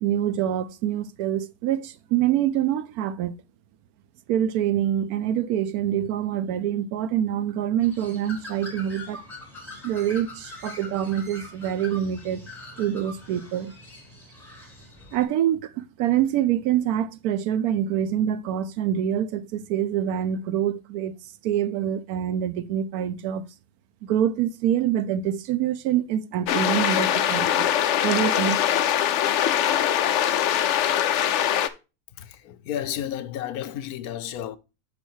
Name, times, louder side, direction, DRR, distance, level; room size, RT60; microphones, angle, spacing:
voice 1, 0.0-3.3 4.3-9.2 9.8-12.5 12.8-13.7 15.1-21.2 21.4-23.4 24.0-27.7 28.0-28.6, right 10 dB, 85° right, 1.1 m, -25 dB
Bird, 7.8-15.2, left 2 dB, ahead, 2.0 m, -43 dB
sound 1, 26.5-31.7, left 10 dB, 65° left, 0.8 m, -22 dB
voice 2, 32.1-34.6, left 10 dB, 85° left, 1.1 m, -32 dB
6.3 x 5.2 x 4.4 m
omnidirectional pair, 1.5 m